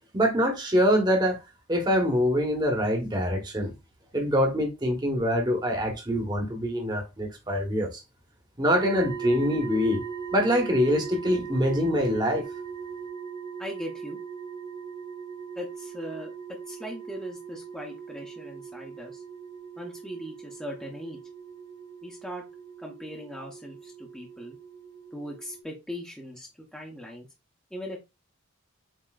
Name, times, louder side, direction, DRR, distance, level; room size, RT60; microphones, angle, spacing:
voice 1, 0.1-1.4 1.7-3.7 4.1-8.0 8.6-10.0 10.3-12.4, equal, 20° right, 1.0 m, -24 dB
sound 1, 8.7-25.6, right 6 dB, 90° right, 0.9 m, -39 dB
voice 2, 13.6-14.2 15.6-16.3 16.7-19.2 19.8-21.2 22.0-22.4 22.8-24.6 25.1-27.3 27.7-28.0, equal, 5° left, 0.7 m, -39 dB
7.4 x 2.8 x 2.3 m
head